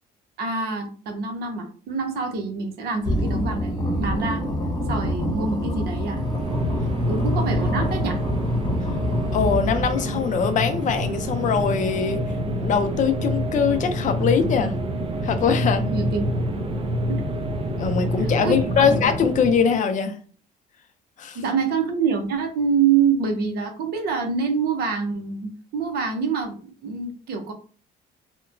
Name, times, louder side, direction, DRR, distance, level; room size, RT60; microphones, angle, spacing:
voice 1, 0.4-4.4 4.9-6.2 7.1-8.2 15.8-16.2 17.1-17.2 18.4-18.9 21.3-27.5, right 5 dB, 70° right, 0.7 m, -26 dB
sound 1, 3.0-10.3, equal, 25° left, 0.9 m, -27 dB
sound 2, 5.9-19.8, equal, 35° right, 0.5 m, -26 dB
voice 2, 9.3-12.2 12.6-14.7 15.2-15.8 17.8-20.2 21.2-21.4, left 6 dB, 50° left, 0.5 m, -22 dB
2.8 x 2.1 x 2.5 m
cardioid pair, 110°, 17 cm